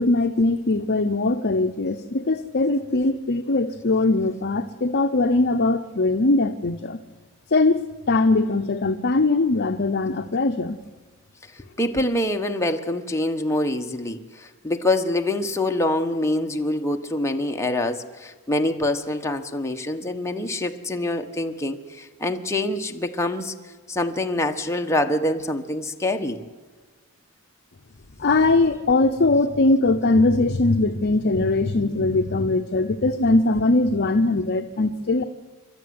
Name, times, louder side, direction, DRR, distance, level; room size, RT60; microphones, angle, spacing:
voice 1, 0.0-7.0 7.5-10.8 28.2-35.2, left 2 dB, 50° left, 7 dB, 0.8 m, -21 dB
voice 2, 11.8-23.5 23.9-26.4, left 1 dB, 15° left, 3 dB, 1.3 m, -25 dB
28.0 x 12.5 x 9.6 m, 1.4 s
head